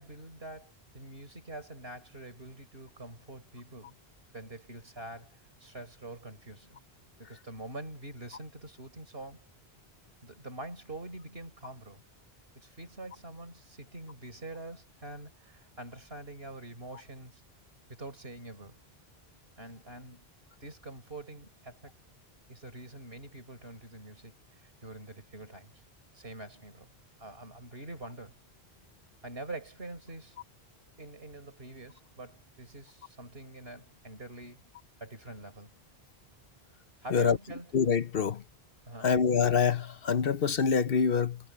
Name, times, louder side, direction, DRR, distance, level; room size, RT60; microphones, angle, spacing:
voice 1, 0.0-4.0 4.3-5.3 5.6-6.8 7.2-9.4 10.2-12.0 12.5-17.4 17.9-18.7 19.6-20.3 20.6-21.9 22.5-25.7 26.1-26.9 27.2-28.4 29.2-30.4 31.0-34.7 35.0-35.8 37.0-37.7 38.9-39.1, right 2 dB, 70° right, 5.0 m, -45 dB
voice 2, 37.7-38.4 39.0-41.4, left 6 dB, 65° left, 1.1 m, -25 dB
omnidirectional pair, 1.1 m